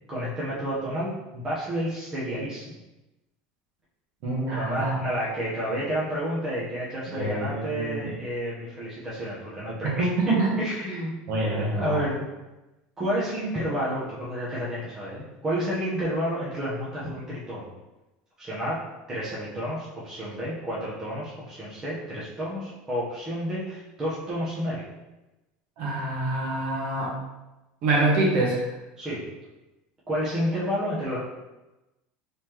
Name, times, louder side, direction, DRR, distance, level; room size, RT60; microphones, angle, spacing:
voice 1, 0.1-2.8 4.5-11.4 11.7-12.2 13.0-17.7 18.4-18.8 19.1-24.8 29.0-29.3 30.1-31.2, equal, 15° right, -8 dB, 0.8 m, -30 dB
voice 2, 4.2-5.0 7.1-8.1 10.0-10.6 11.3-12.0 25.8-27.1 27.8-28.7, right 2 dB, 50° right, -3 dB, 1.2 m, -25 dB
3.9 x 3.3 x 2.9 m, 1.0 s
cardioid pair, 170°, 4 cm